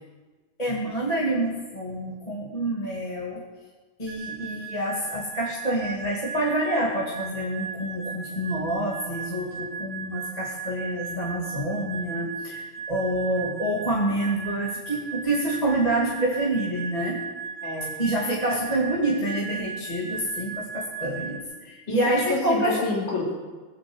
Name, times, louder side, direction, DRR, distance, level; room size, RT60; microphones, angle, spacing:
voice 1, 0.6-3.4 4.0-12.6 12.9-17.2 18.0-22.8, right 1 dB, 15° left, -6 dB, 2.1 m, -27 dB
sound 1, 4.1-21.4, right 6 dB, 15° right, 1.6 m, -37 dB
voice 2, 17.6-17.9 18.5-18.6 21.9-23.3, left 2 dB, 75° left, -1 dB, 4.3 m, -28 dB
20.5 x 8.1 x 7.9 m, 1.3 s
omnidirectional pair, 3.3 m